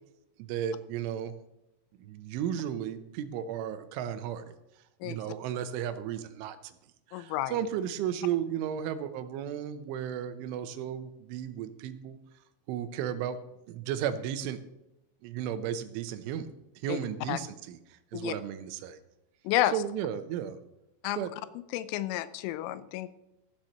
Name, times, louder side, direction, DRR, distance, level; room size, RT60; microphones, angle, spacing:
voice 1, 0.4-1.3 2.0-4.5 5.0-6.8 7.1-12.2 12.7-13.4 13.7-14.6 15.2-16.5 16.8-19.0 19.7-20.6 21.2-21.3, right 9 dB, 85° right, 11 dB, 3.3 m, -34 dB
voice 2, 7.1-7.6 16.9-17.0 17.3-17.4 18.1-18.3 19.4-19.7 21.0-21.3 21.7-23.1, left 14 dB, 90° left, 15 dB, 3.2 m, -30 dB
14.5 x 7.3 x 6.5 m, 0.89 s
omnidirectional pair, 5.5 m